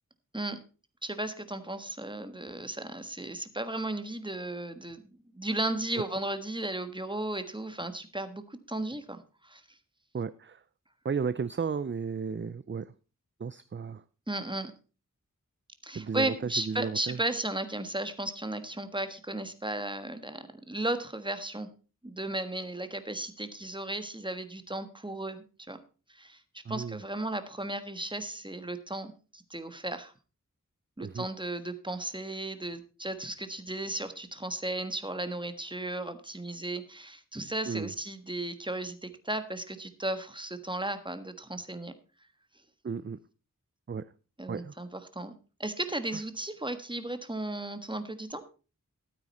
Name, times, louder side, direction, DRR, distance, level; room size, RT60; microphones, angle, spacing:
voice 1, 1.0-5.0 5.3-9.6 14.3-14.7 15.8-21.7 22.0-25.8 26.1-30.1 31.0-41.9 44.4-45.3 45.6-48.4, right 1 dB, 15° right, 10 dB, 1.4 m, -35 dB
voice 2, 10.1-10.6 11.0-12.9 13.4-14.0 15.9-17.2 26.6-27.0 31.0-31.3 37.7-37.9 42.8-43.2 43.9-44.1 44.5-44.7, right 5 dB, 35° right, 15 dB, 0.5 m, -34 dB
13.0 x 8.9 x 4.2 m, 0.34 s
wide cardioid pair, 45°, 33 cm